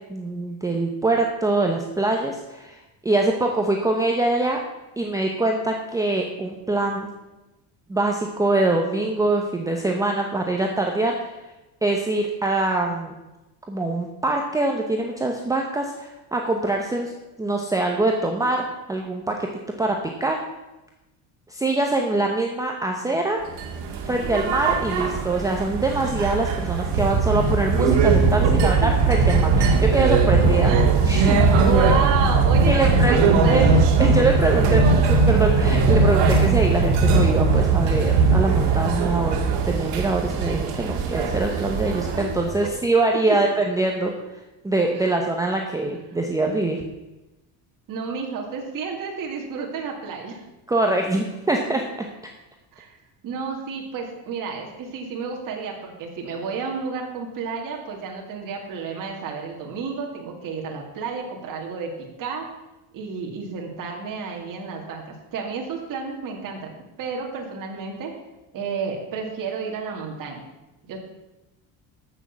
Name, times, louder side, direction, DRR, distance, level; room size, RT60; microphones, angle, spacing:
voice 1, 0.1-4.6 5.0-7.1 7.9-11.4 11.8-13.1 13.7-17.1 17.4-19.5 19.8-20.4 21.5-23.4 24.0-30.7 31.0-31.4 32.7-33.7 34.0-39.4 39.6-44.1 44.6-46.8 50.7-51.8, right 2 dB, 10° right, 1 dB, 0.8 m, -24 dB
sound 1, 23.5-42.7, right 4 dB, 65° right, 2.1 m, -19 dB
voice 2, 30.6-33.8 44.9-45.2 47.9-50.4 52.7-53.0 53.2-61.9 62.2-62.4 62.9-66.7 67.0-68.1 68.5-70.4 70.8-71.0, right 5 dB, 45° right, 0 dB, 2.4 m, -31 dB
13.5 x 6.5 x 7.0 m, 1.0 s
cardioid pair, 160°, 44 cm